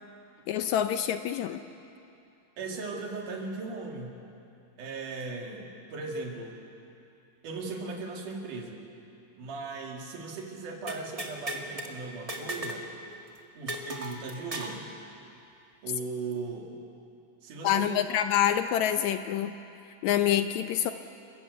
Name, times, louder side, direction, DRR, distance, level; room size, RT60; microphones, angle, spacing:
voice 1, 0.5-1.6 17.6-19.6 19.9-20.9, left 10 dB, 75° left, 9 dB, 1.8 m, -26 dB
voice 2, 2.6-4.2 4.8-6.6 7.4-8.8 9.4-12.9 13.6-14.9 15.8-16.8 17.4-18.0, right 3 dB, 75° right, 1 dB, 3.7 m, -38 dB
sound 1, 10.9-11.9 12.3-12.9 13.1-13.2 13.7-14.8, right 1 dB, 30° right, 0.6 m, -36 dB
28.5 x 14.5 x 8.1 m, 2.7 s
omnidirectional pair, 3.7 m